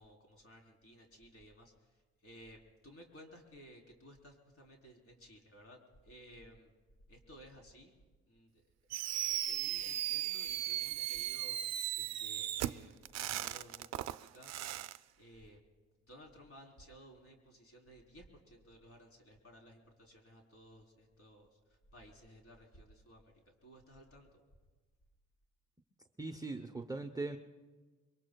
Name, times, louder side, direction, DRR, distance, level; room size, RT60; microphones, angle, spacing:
voice 1, 0.0-1.7 2.2-5.8 6.0-6.7 7.1-7.9 8.3-8.5 9.4-11.6 11.9-14.5 15.2-15.6 16.1-24.4, equal, 45° left, 1 dB, 3.7 m, -57 dB
Fireworks, 8.9-15.0, right 13 dB, 60° right, 0.5 m, -37 dB
voice 2, 26.2-27.4, right 3 dB, 10° right, 4 dB, 0.7 m, -40 dB
25.0 x 23.0 x 2.3 m, 1.3 s
cardioid pair, 90°, 30 cm